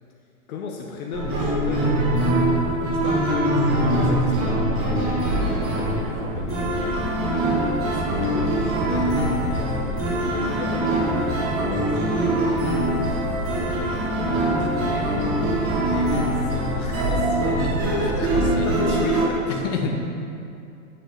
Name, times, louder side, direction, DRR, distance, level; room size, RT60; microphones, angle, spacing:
voice 1, 0.5-1.9 2.6-6.8 7.8-10.1 10.4-13.1 14.3-19.7, left 5 dB, 75° left, -1 dB, 1.1 m, -36 dB
sound 1, 1.1-19.3, right 1 dB, 30° right, 1.7 m, -23 dB
sound 2, 6.3-18.9, left 1 dB, 25° left, 0.9 m, -33 dB
voice 2, 17.6-18.7 19.5-20.0, left 3 dB, 55° left, 2 dB, 1.3 m, -29 dB
9.2 x 3.8 x 6.5 m, 2.5 s
hypercardioid pair, 115°, 44 cm